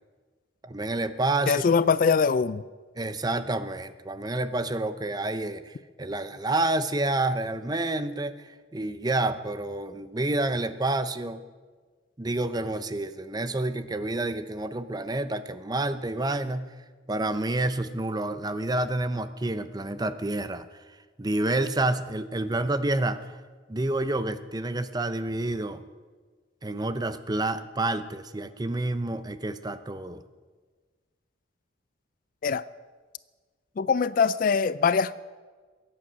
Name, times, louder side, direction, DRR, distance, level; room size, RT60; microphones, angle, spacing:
voice 1, 0.6-1.6 3.0-11.4 12.2-16.7 17.1-20.7 21.2-23.2 23.7-25.8 26.6-30.2, right 2 dB, 20° right, 12 dB, 0.6 m, -29 dB
voice 2, 1.5-2.6 32.4-32.6 33.8-35.1, left 5 dB, 45° left, 17 dB, 0.3 m, -22 dB
22.5 x 8.7 x 6.3 m, 1.4 s
head